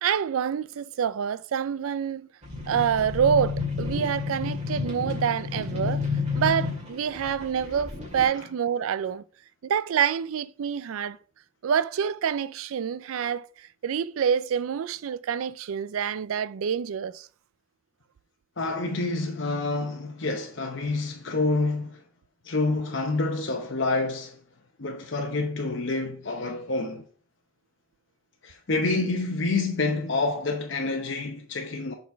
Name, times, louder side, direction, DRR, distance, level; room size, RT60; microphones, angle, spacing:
voice 1, 0.0-2.3 2.7-6.0 6.4-9.2 9.6-11.2 11.6-17.3, right 8 dB, 80° right, 0.4 m, -27 dB
sound 1, 2.4-8.2, left 4 dB, 35° right, 2.0 m, -31 dB
voice 2, 18.6-22.0 22.4-24.4 24.8-27.0 28.4-31.9, left 3 dB, 60° left, 0.8 m, -28 dB
7.0 x 4.0 x 4.5 m
head